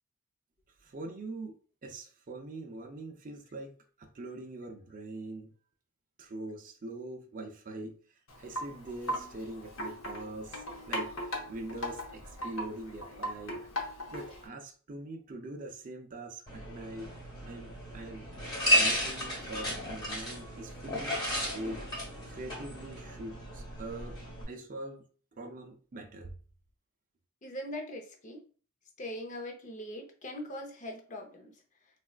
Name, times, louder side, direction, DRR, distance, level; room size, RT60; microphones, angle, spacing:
voice 1, 0.8-3.7 4.0-5.5 6.2-13.6 14.1-17.1 17.5-18.3 18.7-21.9 22.2-24.2 24.5-25.0 25.4-26.3, right 2 dB, 40° right, 0.5 m, -43 dB
Wind chime, 8.3-14.5, equal, 70° left, 0.9 m, -39 dB
sound 1, 16.5-24.4, equal, 20° left, 1.3 m, -33 dB
voice 2, 27.4-28.4 29.0-31.6, left 1 dB, 35° left, 0.6 m, -41 dB
4.1 x 2.3 x 2.3 m
head